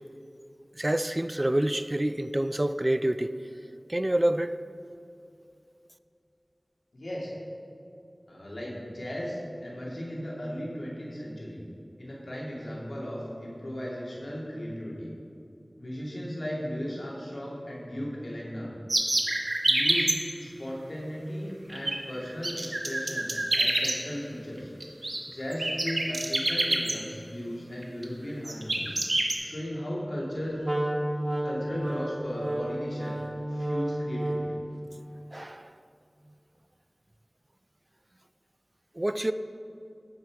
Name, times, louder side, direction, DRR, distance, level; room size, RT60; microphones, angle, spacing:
voice 1, 0.7-3.4 3.9-4.6 35.3-35.7 39.0-39.3, right 1 dB, 30° right, 0.3 m, -27 dB
voice 2, 6.9-7.3 8.3-11.7 12.0-15.1 15.8-18.7 19.6-24.7 25.0-30.6 31.4-33.2 33.5-34.6, equal, 80° left, 2.3 m, -36 dB
sound 1, 18.9-20.2 21.7-22.0 22.2-23.9 24.8-25.2 25.5-26.9 27.8-28.0 28.4-29.3, right 2 dB, 70° right, 1.1 m, -26 dB
Wind instrument woodwind instrument, 30.6-34.7, right 1 dB, 45° right, 1.2 m, -31 dB
14.0 x 5.7 x 4.7 m
wide cardioid pair, 55°, 0 cm